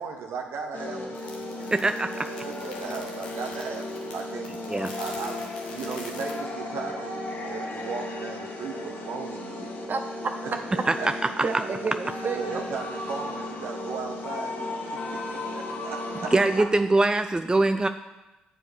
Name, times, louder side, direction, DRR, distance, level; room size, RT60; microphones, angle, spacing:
voice 1, 0.0-1.7 2.3-4.5 5.0-9.7 10.4-11.1 12.3-14.6 14.8-16.3, right 5 dB, 65° right, 3 dB, 1.2 m, -37 dB
sound 1, 0.7-16.6, left 2 dB, 50° left, 2.0 m, -35 dB
sound 2, 1.1-6.3, left 3 dB, 90° left, 1.1 m, -44 dB
voice 2, 1.7-2.1 4.7-4.9 10.9-11.0 16.3-17.9, right 2 dB, 15° right, 9 dB, 0.5 m, -22 dB
voice 3, 9.9-10.6 11.0-11.1 11.4-12.7, right 4 dB, 45° right, 6 dB, 1.3 m, -31 dB
9.7 x 4.8 x 6.4 m, 1.0 s
hypercardioid pair, 40°, 4 cm